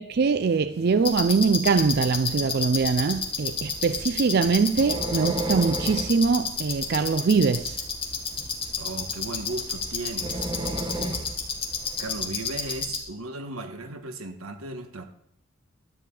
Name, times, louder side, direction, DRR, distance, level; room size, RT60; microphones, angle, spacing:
voice 1, 0.0-7.8, right 4 dB, 50° right, 0.4 m, -23 dB
sound 1, 1.0-13.0, left 5 dB, 25° left, 1.8 m, -31 dB
sound 2, 2.2-12.3, right 1 dB, 20° right, 1.2 m, -36 dB
voice 2, 8.8-11.3 12.0-15.0, right 2 dB, 90° right, 1.4 m, -36 dB
13.0 x 5.0 x 8.5 m
head